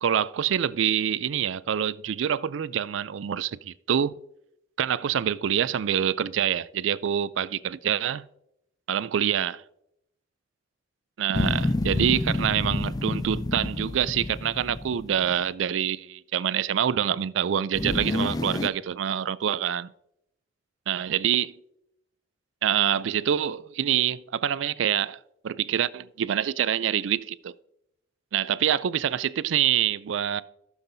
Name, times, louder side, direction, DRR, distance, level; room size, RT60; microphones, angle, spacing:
voice 1, 0.0-4.1 4.8-8.3 8.9-9.6 11.2-19.9 20.9-21.6 22.6-25.2 25.4-27.5 28.3-30.4, right 9 dB, 80° right, 0.4 m, -26 dB
sound 1, 11.3-15.3 17.7-18.7, left 2 dB, 20° left, 0.4 m, -28 dB
15.5 x 7.2 x 2.7 m
head